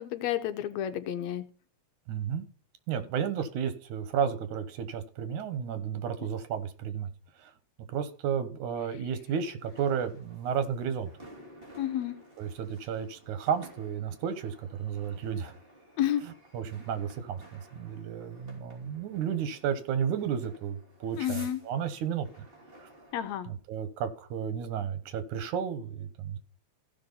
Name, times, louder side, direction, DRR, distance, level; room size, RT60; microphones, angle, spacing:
voice 1, 0.0-1.5 11.8-12.2 16.0-16.2 21.2-21.6 23.1-23.5, left 11 dB, 75° left, 10 dB, 1.9 m, -30 dB
voice 2, 2.1-2.5 2.9-7.1 7.4-7.5 7.9-11.1 12.4-15.5 16.5-22.3 23.5-26.4, right 8 dB, 85° right, 12 dB, 2.7 m, -32 dB
sound 1, 9.6-23.3, right 1 dB, 20° right, 3.3 m, -54 dB
15.5 x 5.7 x 4.1 m, 0.43 s
omnidirectional pair, 3.4 m